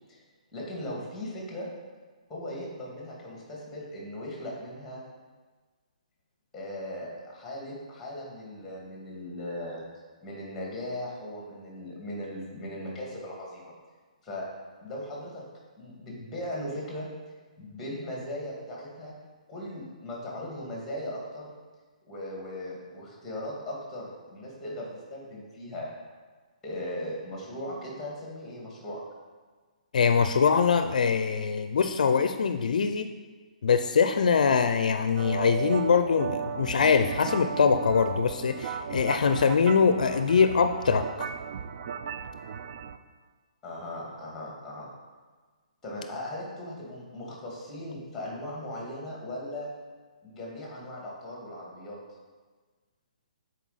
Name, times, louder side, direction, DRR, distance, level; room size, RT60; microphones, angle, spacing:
voice 1, 0.5-1.7 2.3-5.0 6.5-9.8 10.2-13.7 14.2-14.4 14.8-15.4 15.8-17.1 17.6-19.1 19.5-21.5 22.1-25.9 26.6-29.0 43.6-44.9 45.8-49.7 50.2-52.0, left 1 dB, 5° left, -3 dB, 2.1 m, -38 dB
voice 2, 29.9-33.1 33.6-41.1, left 6 dB, 70° left, 9 dB, 0.4 m, -23 dB
sound 1, 35.2-43.0, right 7 dB, 50° right, 0.4 m, -35 dB
9.1 x 4.3 x 4.1 m, 1.4 s
hypercardioid pair, 150°, 4 cm